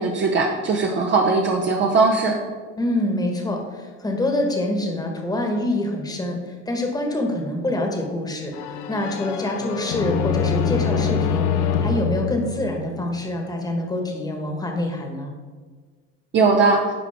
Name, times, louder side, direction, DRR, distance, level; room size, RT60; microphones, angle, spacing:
voice 1, 0.0-2.4 16.3-16.8, right 4 dB, 35° right, 1 dB, 0.8 m, -19 dB
voice 2, 2.8-15.3, left 1 dB, 10° left, 2 dB, 1.3 m, -26 dB
sound 1, 8.5-13.3, left 7 dB, 70° left, 0.8 m, -25 dB
11.5 x 4.6 x 3.5 m, 1.5 s
supercardioid pair, 110°, 31 cm